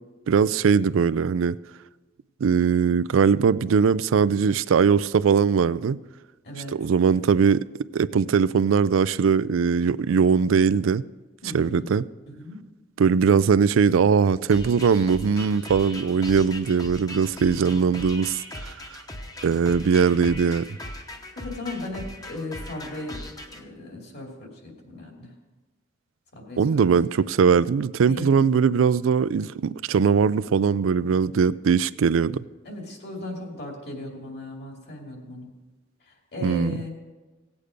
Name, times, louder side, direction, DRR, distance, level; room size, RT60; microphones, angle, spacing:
voice 1, 0.3-1.6 2.4-6.0 6.7-7.7 7.9-11.0 11.5-12.0 13.0-18.7 19.4-20.7 26.6-32.4 36.4-36.8, right 6 dB, 90° right, 0.4 m, -20 dB
voice 2, 6.4-6.8 11.4-11.9 12.3-12.6 21.4-23.2 23.5-25.3 26.3-26.8 28.1-28.4 32.6-35.5 36.0-36.9, left 2 dB, 55° left, 2.7 m, -36 dB
sound 1, 14.5-23.6, left 1 dB, 20° left, 0.9 m, -39 dB
17.5 x 8.4 x 5.1 m
head